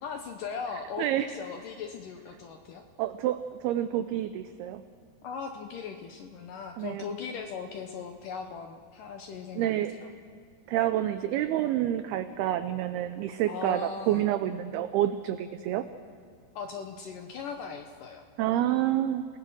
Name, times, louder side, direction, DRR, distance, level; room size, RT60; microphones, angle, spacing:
voice 1, 0.0-2.8 5.2-9.8 10.0-10.1 13.5-14.2 16.6-18.2, left 6 dB, 80° left, 5 dB, 1.9 m, -38 dB
voice 2, 3.0-4.8 6.8-7.0 9.6-9.9 10.7-15.9 18.4-19.3, right 12 dB, 80° right, 10 dB, 2.3 m, -28 dB
28.5 x 19.0 x 6.3 m, 2.2 s
omnidirectional pair, 5.1 m